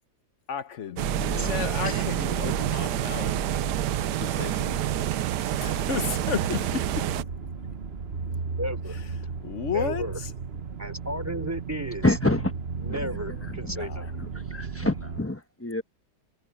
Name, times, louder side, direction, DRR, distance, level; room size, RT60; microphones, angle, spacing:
voice 1, 0.5-3.4 4.2-5.3 5.6-7.1 9.4-10.3 13.7-14.1, left 7 dB, 50° left, 1.0 m, -33 dB
sound 1, 1.0-15.2, right 5 dB, 40° right, 1.3 m, -35 dB
sound 2, 1.0-7.2, right 14 dB, 75° right, 1.2 m, -28 dB
voice 2, 1.4-2.0 8.6-9.0 9.7-10.2 10.8-12.1 12.8-14.1, equal, 10° right, 3.2 m, -34 dB
voice 3, 12.0-12.5 12.9-13.2 13.6-13.7 14.2-15.8, left 1 dB, 10° left, 0.9 m, -27 dB
omnidirectional pair, 1.9 m